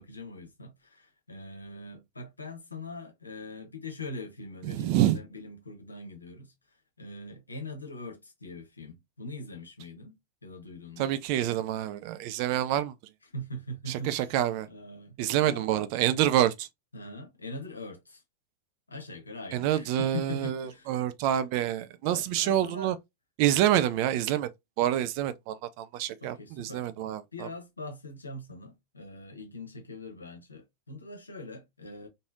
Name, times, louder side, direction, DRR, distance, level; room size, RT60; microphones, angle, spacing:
voice 1, 0.0-6.5 7.0-11.1 13.3-14.3 14.7-15.1 15.4-15.7 16.9-18.2 18.9-21.0 22.1-22.9 26.2-32.1, left 1 dB, 80° left, 0.9 m, -42 dB
voice 2, 4.6-5.2 11.0-12.9 13.9-14.7 15.2-16.7 19.5-23.0 23.4-24.5 24.8-27.5, right 12 dB, 45° right, 0.4 m, -27 dB
3.2 x 2.5 x 2.4 m
figure-of-eight pair, 90°, 0 cm